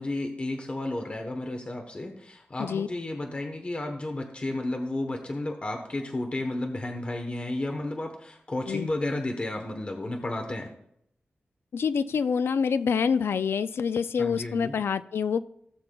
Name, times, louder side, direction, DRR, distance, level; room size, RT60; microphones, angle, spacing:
voice 1, 0.0-10.7 14.2-14.7, left 2 dB, 30° left, 4 dB, 1.0 m, -32 dB
voice 2, 11.7-15.4, left 6 dB, 90° left, 13 dB, 0.3 m, -26 dB
17.0 x 6.9 x 2.3 m, 0.73 s
wide cardioid pair, 115°, 4 cm